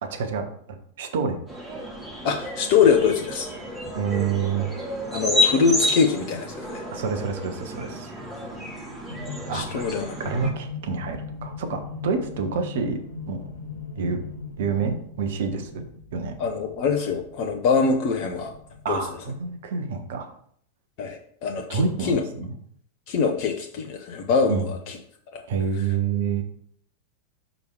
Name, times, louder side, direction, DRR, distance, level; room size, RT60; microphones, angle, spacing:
voice 1, 0.0-1.4 3.9-4.7 6.9-8.1 9.5-9.8 10.2-13.0 13.3-13.5 14.0-14.2 14.6-15.8 16.1-16.3 18.8-20.3 21.7-22.5 24.5-24.7 25.5-26.4, right 5 dB, 55° right, 5 dB, 1.1 m, -28 dB
sound 1, 1.5-10.5, left 1 dB, 10° right, 2.2 m, -30 dB
voice 2, 2.2-3.5 5.1-6.8 9.5-10.1 16.4-18.5 18.9-19.0 21.0-22.2 23.1-25.0 25.3-25.4, left 5 dB, 45° left, 3 dB, 0.7 m, -23 dB
sound 2, 9.1-19.5, left 5 dB, 70° left, 0.9 m, -40 dB
5.2 x 4.7 x 4.8 m, 0.64 s
figure-of-eight pair, 90°, 0 cm